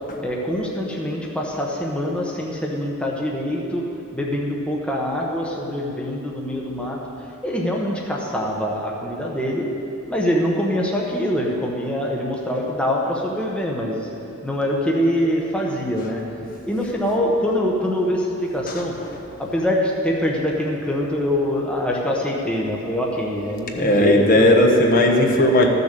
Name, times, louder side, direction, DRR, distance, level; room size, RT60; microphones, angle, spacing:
voice 1, 0.2-3.8 4.1-7.0 7.4-9.7 10.1-14.1 14.4-16.2 16.7-18.9 19.4-24.5, equal, 5° left, -2 dB, 1.0 m, -24 dB
voice 2, 23.8-25.7, left 1 dB, 40° left, 1 dB, 1.2 m, -15 dB
14.0 x 6.8 x 6.7 m, 2.8 s
head